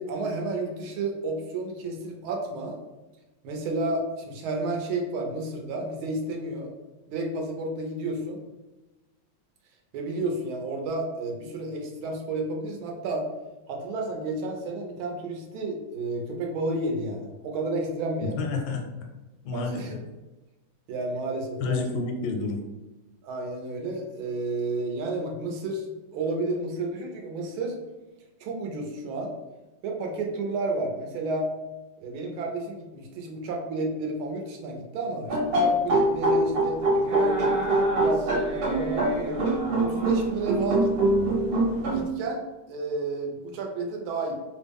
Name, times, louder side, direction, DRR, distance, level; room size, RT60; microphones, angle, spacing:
voice 1, 0.0-2.8 3.4-6.7 7.1-8.4 9.9-13.3 13.7-18.4 19.5-19.9 20.9-21.8 23.2-25.9 26.1-27.7 28.4-29.3 29.8-31.5 32.0-39.4 39.7-41.2 41.9-44.3, right 2 dB, 90° right, 1 dB, 1.5 m, -31 dB
voice 2, 18.2-18.8 19.4-20.0 21.6-22.6, left 4 dB, 80° left, 3 dB, 1.4 m, -29 dB
sound 1, 35.3-42.0, right 1 dB, 65° right, 1.6 m, -24 dB
3.6 x 2.0 x 3.4 m, 1.1 s
omnidirectional pair, 2.2 m